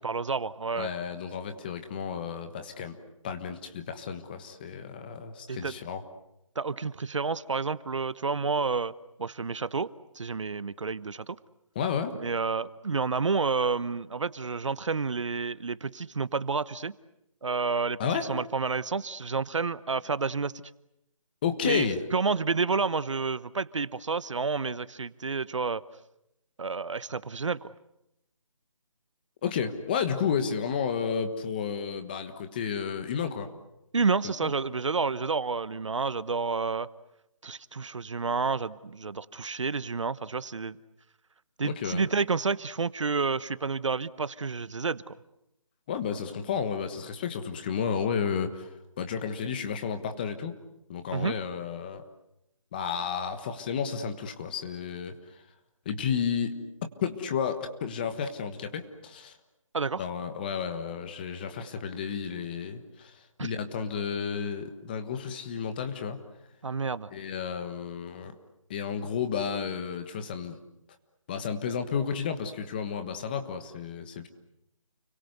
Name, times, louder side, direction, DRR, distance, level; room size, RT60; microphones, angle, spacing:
voice 1, 0.0-0.9 5.5-5.7 6.6-8.9 9.2-9.9 10.2-11.4 12.2-16.9 17.4-18.0 18.3-20.5 21.6-25.8 26.6-27.7 33.9-36.9 37.4-40.8 41.6-45.1 51.1-51.3 59.7-60.0 63.4-63.5 66.6-67.1, right 4 dB, 60° right, 17 dB, 1.0 m, -29 dB
voice 2, 0.8-3.0 3.2-6.0 11.7-12.1 18.0-18.3 21.4-22.0 29.4-33.5 34.4-34.5 41.6-42.1 45.9-50.5 50.9-52.0 52.7-55.1 55.8-56.6 57.0-59.4 60.0-66.2 67.1-68.3 68.7-70.6 71.3-74.3, left 7 dB, 15° left, 8 dB, 1.4 m, -32 dB
30.0 x 23.0 x 8.1 m, 0.83 s
figure-of-eight pair, 170°, 17 cm